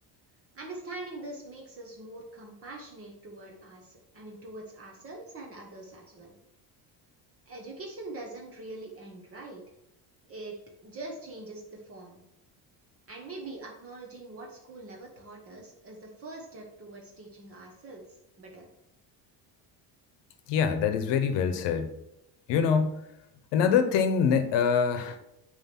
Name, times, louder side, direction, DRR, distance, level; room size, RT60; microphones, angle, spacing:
voice 1, 0.5-6.4 7.5-9.6 10.3-10.6 10.8-12.2 13.1-18.0 18.4-18.7, right 2 dB, 30° right, 0 dB, 1.2 m, -43 dB
voice 2, 20.5-21.9 22.5-23.0 23.5-25.2, left 6 dB, 70° left, 9 dB, 1.1 m, -24 dB
9.3 x 3.4 x 6.0 m, 0.85 s
cardioid pair, 165°, 45 cm